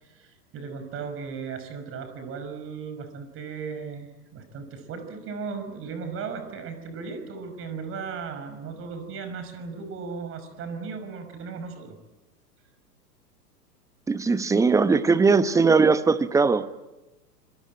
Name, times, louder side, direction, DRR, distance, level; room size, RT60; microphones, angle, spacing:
voice 1, 0.0-12.0, right 5 dB, 25° right, 8 dB, 5.7 m, -36 dB
voice 2, 14.1-16.7, right 4 dB, 5° right, 13 dB, 1.0 m, -20 dB
26.0 x 24.0 x 8.9 m, 1.0 s
figure-of-eight pair, 105°, 49 cm